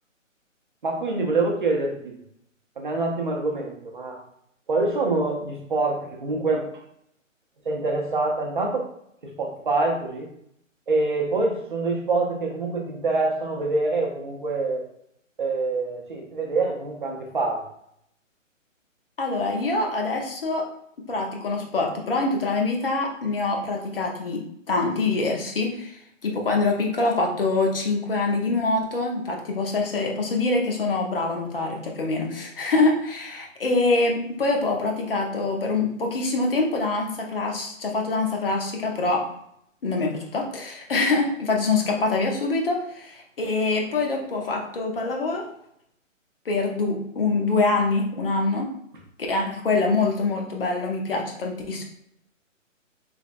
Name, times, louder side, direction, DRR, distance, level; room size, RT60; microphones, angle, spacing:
voice 1, 0.8-2.2 2.8-4.2 4.7-6.7 7.6-8.9 9.2-10.3 10.9-14.9 15.4-17.6, right 3 dB, 40° right, 1 dB, 0.6 m, -25 dB
voice 2, 19.2-20.7 21.1-39.2 39.8-45.5 46.5-48.7 49.3-51.8, left 3 dB, 45° left, 1 dB, 0.7 m, -25 dB
3.3 x 3.0 x 2.4 m, 0.74 s
hypercardioid pair, 165°, 39 cm